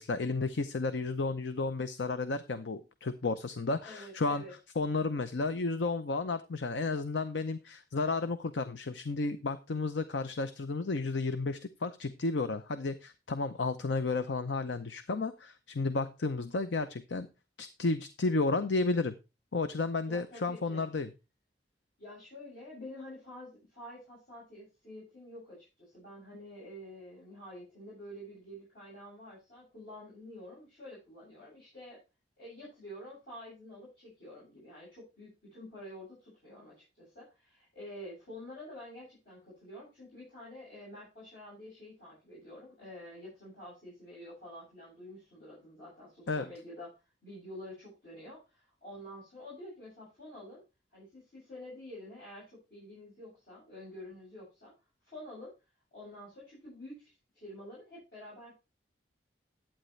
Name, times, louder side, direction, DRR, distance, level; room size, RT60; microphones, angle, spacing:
voice 1, 0.0-4.4 4.8-17.3 17.6-19.1 19.5-21.1 46.3-46.4, left 3 dB, 85° left, 10 dB, 0.7 m, -32 dB
voice 2, 3.8-4.5 20.0-20.9 22.0-32.0 32.4-46.9 47.2-50.6 50.9-54.7 55.1-55.5 55.9-58.6, left 1 dB, 60° left, -7 dB, 7.5 m, -48 dB
11.5 x 8.7 x 3.2 m, 0.28 s
head